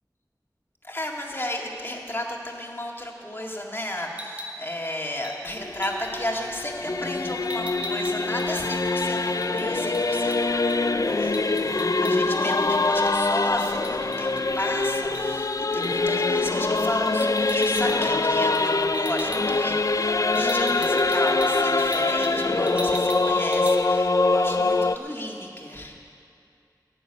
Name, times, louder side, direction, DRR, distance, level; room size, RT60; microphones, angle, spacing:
voice 1, 0.8-10.6 11.0-26.0, left 1 dB, 30° left, -1 dB, 2.0 m, -33 dB
sound 1, 4.1-4.6 5.2-5.4 5.8-6.1 7.5-10.4 10.7-10.8 11.1-12.4 12.7-14.7 15.1-15.3 15.8-16.1 17.1-18.1 18.4-18.7 18.9-19.4 20.3-22.4 22.7-23.3 23.5-23.8, equal, 20° right, 1.7 m, -37 dB
Singing / Musical instrument, 5.6-25.0, left 3 dB, 50° left, 0.4 m, -24 dB
15.0 x 7.0 x 9.8 m, 2.5 s
wide cardioid pair, 50°, 7 cm